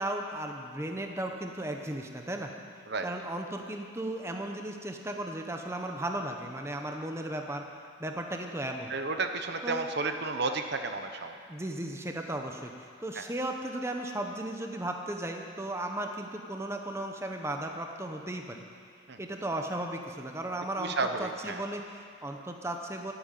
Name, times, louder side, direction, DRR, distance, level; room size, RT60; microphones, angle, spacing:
voice 1, 0.0-2.5 3.0-7.6 8.0-8.9 9.6-9.9 11.5-18.6 19.2-23.1, right 1 dB, 15° right, 3 dB, 0.8 m, -35 dB
voice 2, 8.9-11.4 13.2-13.3 19.1-19.2 20.8-21.6, right 3 dB, 55° right, 6 dB, 0.9 m, -32 dB
15.5 x 8.9 x 9.0 m, 2.2 s
head